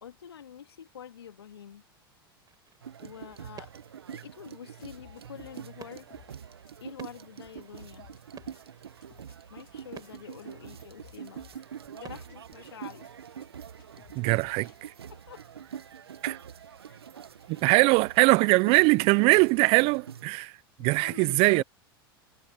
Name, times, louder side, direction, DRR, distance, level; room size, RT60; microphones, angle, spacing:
voice 1, 0.0-1.8 3.0-3.7 4.1-6.1 6.8-8.1 9.5-11.4 11.9-13.1 15.1-15.4 16.9-17.0 17.5-17.7 20.8-21.6, left 9 dB, 85° left, 2.8 m, -46 dB
sound 1, 2.4-13.1, right 9 dB, 30° right, 4.6 m, -55 dB
sound 2, 2.8-20.3, right 8 dB, 85° right, 1.4 m, -45 dB
sound 3, 4.8-5.6 5.9-6.4 6.7-6.8 7.0-7.1 7.4-7.5 7.8-8.6 9.0-9.4 9.7-9.8 10.0-10.1 10.4-10.5 10.8-11.6 12.0-12.4 12.7-12.8 13.0-13.1 13.4-13.5 13.8-14.8, left 20 dB, 65° left, 4.2 m, -56 dB
voice 2, 14.2-14.7 16.2-16.4 17.5-20.5 20.8-21.6, right 27 dB, 50° right, 0.5 m, -22 dB
hypercardioid pair, 95°, 13 cm